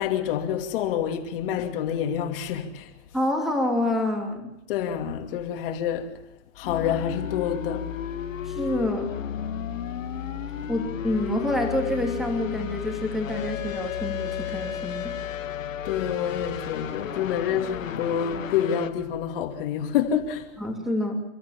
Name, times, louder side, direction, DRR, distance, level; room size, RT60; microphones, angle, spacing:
voice 1, 0.0-2.9 4.7-6.1 6.6-7.9 15.8-20.4, left 9 dB, 45° left, 2.6 m, -27 dB
voice 2, 3.1-4.5 8.4-9.2 10.7-15.1 20.6-21.2, left 1 dB, ahead, 2.7 m, -27 dB
sound 1, 6.6-18.9, left 9 dB, 90° left, 1.6 m, -33 dB
29.0 x 13.5 x 7.1 m
hypercardioid pair, 145°, 38 cm